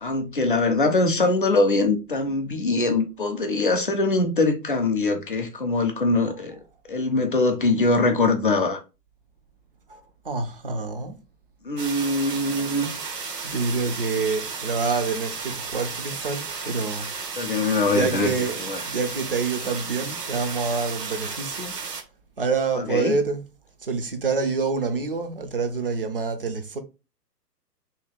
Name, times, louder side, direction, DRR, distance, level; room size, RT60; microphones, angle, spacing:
voice 1, 0.0-6.6 6.9-8.8 11.6-12.9 17.4-18.3 18.6-18.8 22.8-23.2, left 3 dB, 35° left, 0.4 m, -22 dB
voice 2, 9.9-11.2 13.4-17.1 17.9-21.8 22.4-23.5 23.8-26.8, right 4 dB, 40° right, 0.4 m, -27 dB
Small Waterfall (sharp), 11.8-22.0, right 5 dB, 70° right, 0.9 m, -34 dB
2.8 x 2.8 x 3.8 m
figure-of-eight pair, 125°, 49 cm